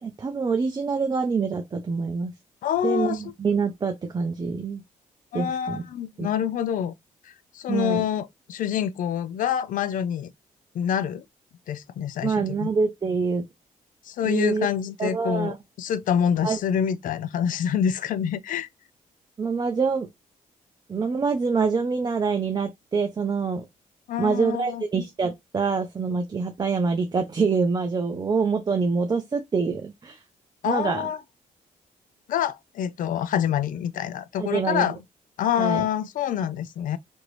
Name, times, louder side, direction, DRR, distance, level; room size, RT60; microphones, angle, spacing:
voice 1, 0.0-2.3 2.8-4.8 5.3-5.8 6.2-6.3 7.7-8.0 12.2-13.4 14.2-14.7 15.0-15.6 16.4-16.6 19.4-20.1 20.9-23.6 24.2-30.2 30.6-31.0 34.4-34.9 35.6-35.9, right 5 dB, 30° right, 0.6 m, -25 dB
voice 2, 2.6-3.3 5.3-6.9 7.2-10.3 10.7-11.2 11.7-12.7 14.0-18.7 24.1-24.8 30.6-31.2 32.3-35.0 35.4-37.0, left 9 dB, 70° left, 0.4 m, -26 dB
2.9 x 2.6 x 3.1 m
cardioid pair, 85°, 14 cm